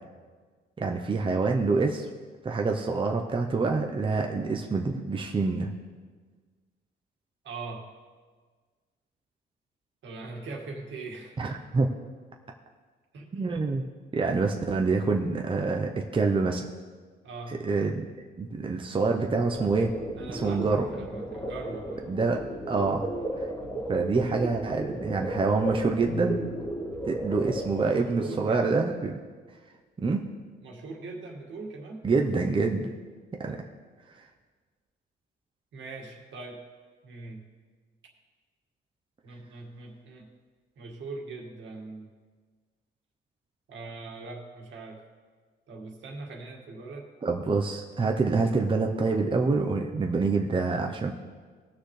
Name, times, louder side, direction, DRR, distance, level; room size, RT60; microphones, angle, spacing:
voice 1, 0.8-2.1 2.4-5.7 11.4-11.9 13.3-13.8 14.1-16.7 17.5-18.1 18.4-19.9 20.3-20.9 22.1-23.1 23.9-26.4 27.1-29.2 30.0-30.3 32.0-32.9 33.4-33.6 34.1-34.3 47.2-51.1, right 4 dB, 25° right, 2 dB, 0.8 m, -26 dB
voice 2, 7.4-7.9 10.0-11.4 13.1-13.6 17.2-17.6 20.2-22.1 28.2-28.9 30.6-32.0 35.7-36.6 37.0-37.4 39.2-40.3 40.8-42.1 43.7-45.0 45.7-47.1, right 3 dB, 70° right, 0 dB, 2.1 m, -41 dB
sound 1, 19.5-27.8, equal, 20° left, 1.9 m, -34 dB
19.0 x 6.4 x 3.3 m, 1.5 s
cardioid pair, 90°, 20 cm